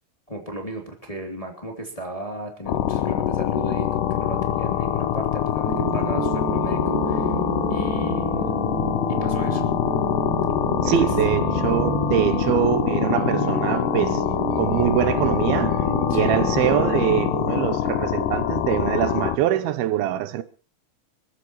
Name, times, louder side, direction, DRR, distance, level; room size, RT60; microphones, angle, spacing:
voice 1, 0.3-7.3 7.7-8.5 9.2-9.6 10.8-11.1 16.1-16.4, right 1 dB, 10° left, 2.5 m, -35 dB
sound 1, 2.7-19.4, left 11 dB, 70° left, 2.2 m, -24 dB
sound 2, 5.7-17.3, right 8 dB, 60° right, 2.7 m, -30 dB
voice 2, 10.8-14.2 14.6-15.9 16.1-20.4, right 11 dB, 80° right, 2.8 m, -23 dB
26.5 x 14.0 x 3.1 m
omnidirectional pair, 4.3 m